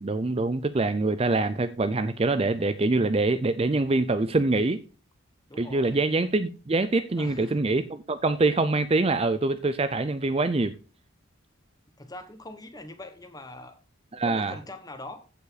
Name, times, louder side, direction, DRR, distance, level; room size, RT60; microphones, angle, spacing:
voice 1, 0.0-4.8 5.6-10.7 14.1-14.5, right 2 dB, 30° right, 0.5 m, -25 dB
voice 2, 5.5-6.0 7.2-7.6 12.0-13.8 14.2-15.2, left 2 dB, 20° left, 1.4 m, -42 dB
15.0 x 5.4 x 4.1 m
head